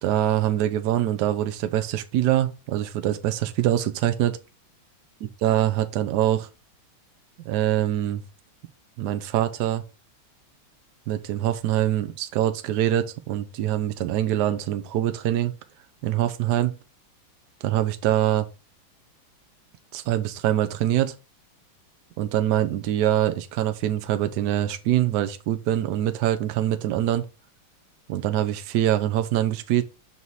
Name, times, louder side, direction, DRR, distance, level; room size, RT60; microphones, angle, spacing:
voice 1, 0.0-4.4 5.4-6.5 7.5-8.2 9.0-9.8 11.1-15.5 16.0-16.7 17.6-18.5 19.9-21.1 22.2-27.3 28.1-29.8, right 12 dB, 65° right, 1.2 m, -24 dB
5.5 x 4.1 x 4.6 m
omnidirectional pair, 2.1 m